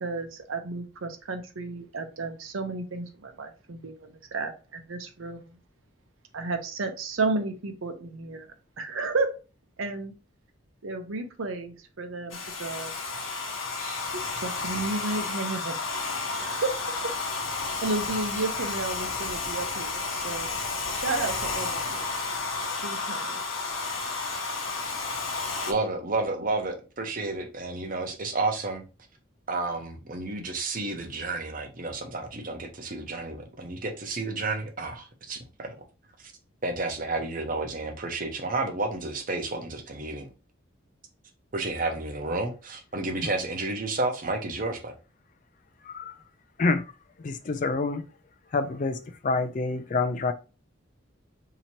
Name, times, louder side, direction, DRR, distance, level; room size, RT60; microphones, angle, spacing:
voice 1, 0.0-5.6 6.3-8.5 8.8-9.3 9.8-10.1 10.8-12.9 13.8-15.8 16.4-16.7 17.8-20.5 20.9-22.1 22.8-23.3, right 3 dB, 85° right, 0.7 m, -32 dB
Domestic sounds home sounds, 12.3-25.7, left 3 dB, 85° left, 0.8 m, -32 dB
voice 2, 25.7-28.8 29.5-35.7 36.6-40.3 41.5-44.9, right 2 dB, 45° right, 0.7 m, -31 dB
voice 3, 45.8-46.2 46.6-46.9 47.2-48.0 48.5-50.3, left 3 dB, 40° left, 0.4 m, -27 dB
2.9 x 2.8 x 4.3 m
head